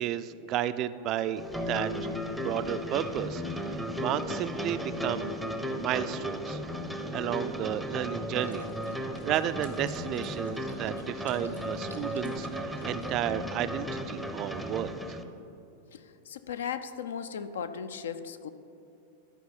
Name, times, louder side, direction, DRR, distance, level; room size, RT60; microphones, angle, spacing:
voice 1, 0.0-1.9 2.4-5.3 5.8-6.6 7.1-15.2, right 11 dB, 35° right, 13 dB, 0.3 m, -33 dB
sound 1, 1.4-15.2, equal, ahead, 0.6 m, -35 dB
sound 2, 8.4-13.5, left 1 dB, 85° left, 0.8 m, -54 dB
voice 2, 15.9-18.5, left 7 dB, 65° left, 12 dB, 0.4 m, -37 dB
11.5 x 4.7 x 5.8 m, 2.8 s
figure-of-eight pair, 90°, 0 cm